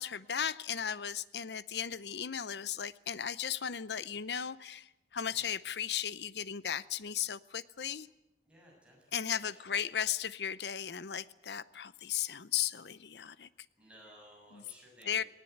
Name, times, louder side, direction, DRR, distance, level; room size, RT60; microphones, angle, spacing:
voice 1, 0.0-8.1 9.1-13.5 15.1-15.2, left 8 dB, 75° left, 0.7 m, -36 dB
voice 2, 8.4-9.8 13.8-15.3, equal, 5° right, 7.0 m, -58 dB
18.5 x 18.5 x 9.4 m
head